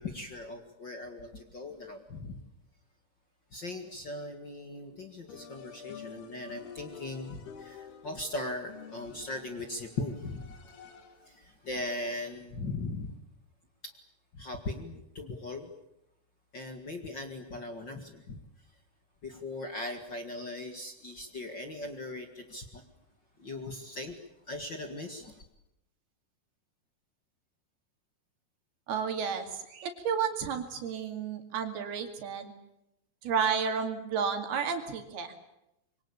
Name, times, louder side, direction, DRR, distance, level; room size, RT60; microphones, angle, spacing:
voice 1, 0.0-2.4 3.5-13.2 13.8-13.9 14.3-15.7 16.5-18.4 19.2-22.8 23.4-24.2 24.4-25.4, left 2 dB, 40° left, 6 dB, 1.6 m, -39 dB
sound 1, 5.3-11.4, left 6 dB, 70° left, 4.1 m, -49 dB
voice 2, 28.9-32.5 33.2-35.3, right 6 dB, 70° right, 6 dB, 4.3 m, -32 dB
26.0 x 23.5 x 8.6 m, 0.86 s
omnidirectional pair, 4.8 m